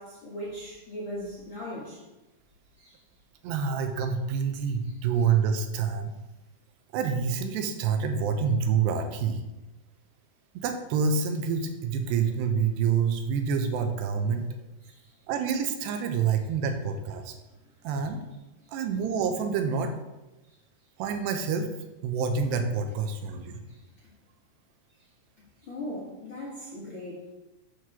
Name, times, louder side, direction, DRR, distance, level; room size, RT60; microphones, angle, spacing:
voice 1, 0.0-2.0 2.8-3.0 14.8-15.1 23.1-23.2 23.7-23.8 25.6-27.2, left 1 dB, 45° left, -6 dB, 1.6 m, -39 dB
voice 2, 3.4-6.1 6.9-9.4 10.5-14.4 15.3-17.3 17.8-18.2 18.7-19.9 21.0-21.7 22.0-23.6, right 6 dB, 90° right, 6 dB, 3.0 m, -27 dB
8.4 x 4.8 x 6.0 m, 1.0 s
omnidirectional pair, 4.8 m